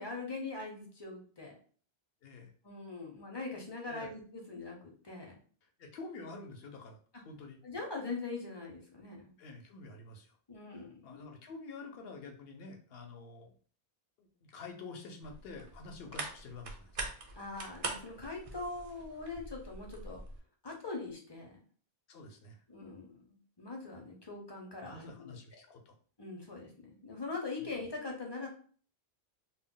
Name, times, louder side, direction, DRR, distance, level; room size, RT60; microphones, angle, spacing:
voice 1, 0.0-1.5 2.6-5.4 7.6-9.3 10.5-11.3 17.4-20.2 20.6-21.5 22.7-25.3 26.2-28.5, left 3 dB, 30° left, 0 dB, 0.5 m, -42 dB
voice 2, 5.8-7.0 7.2-7.6 9.4-10.3 10.7-13.5 14.2-16.9 22.1-22.6 24.8-25.9, left 3 dB, 75° left, 3 dB, 0.8 m, -48 dB
sound 1, 15.2-20.4, right 3 dB, 50° right, 0.4 m, -43 dB
2.2 x 2.0 x 3.6 m, 0.43 s
omnidirectional pair, 1.0 m